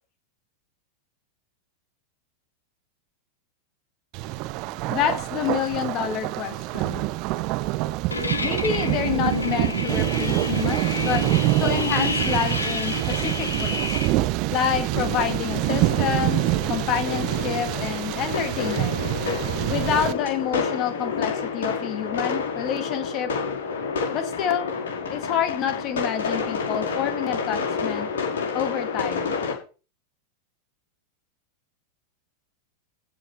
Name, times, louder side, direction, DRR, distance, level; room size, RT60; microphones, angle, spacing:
Thunder, 4.1-20.1, right 17 dB, 40° right, 0.9 m, -26 dB
voice 1, 4.9-7.0 8.4-11.2 11.6-13.9 14.5-16.4 16.7-19.0 19.7-23.3 24.1-24.7 25.1-28.1 28.5-29.4, left 9 dB, 35° left, 8 dB, 2.1 m, -28 dB
sound 1, 8.1-14.1, left 3 dB, 75° left, 1.3 m, -29 dB
sound 2, 14.9-29.5, left 5 dB, 55° left, 5.4 m, -29 dB
15.0 x 5.6 x 5.7 m, 0.35 s
figure-of-eight pair, 90°, 0 cm